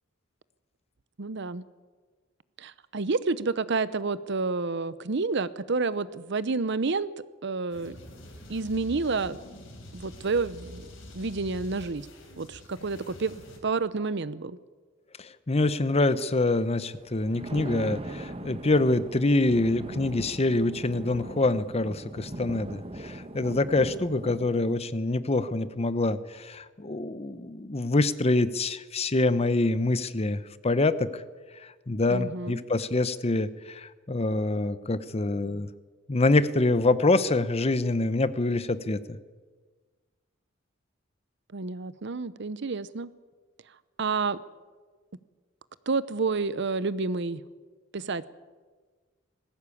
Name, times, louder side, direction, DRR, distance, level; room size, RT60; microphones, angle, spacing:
voice 1, 1.2-1.6 2.6-7.1 7.4-8.0 8.5-9.4 9.9-10.9 11.1-12.1 12.4-13.3 13.6-14.6 32.1-32.6 41.5-43.1 44.0-44.4 45.9-47.4 47.9-48.2, right 4 dB, 65° right, 17 dB, 0.8 m, -29 dB
sound 1, 7.7-13.6, left 1 dB, 75° left, 4.5 m, -46 dB
voice 2, 15.2-31.2 31.9-35.7 36.1-39.0, left 2 dB, 30° left, 14 dB, 0.8 m, -25 dB
Thunder, 17.0-24.8, right 1 dB, 30° right, 1.3 m, -40 dB
19.5 x 16.0 x 8.5 m, 1.4 s
head